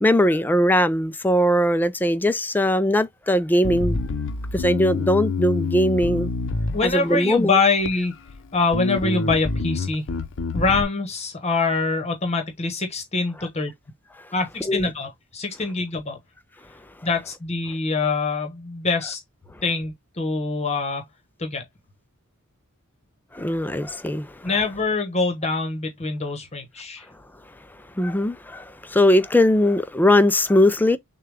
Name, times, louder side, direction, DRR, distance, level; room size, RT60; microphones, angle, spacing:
voice 1, 0.0-4.0 4.5-6.3 6.8-7.6 14.6-14.9 23.3-24.5 28.0-31.0, left 1 dB, 10° left, 0.4 m, -20 dB
Bass guitar, 3.6-7.2 7.8-8.4 8.7-10.8, left 3 dB, 60° left, 0.6 m, -27 dB
voice 2, 6.7-8.1 8.5-10.0 10.5-13.7 14.3-16.2 17.0-19.2 19.6-21.0 21.4-21.6 24.4-27.1, left 3 dB, 30° left, 1.1 m, -24 dB
6.6 x 2.3 x 3.4 m
head